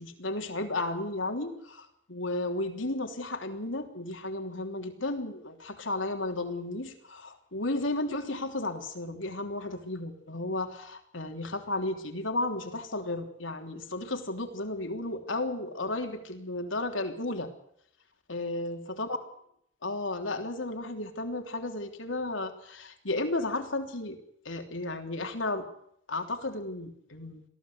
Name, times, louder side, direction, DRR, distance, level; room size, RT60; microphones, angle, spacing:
voice 1, 0.0-17.5 18.3-19.1 19.8-24.2 24.5-25.6 26.1-27.4, left 2 dB, 90° left, 5 dB, 3.3 m, -33 dB
22.5 x 15.5 x 8.0 m, 0.70 s
head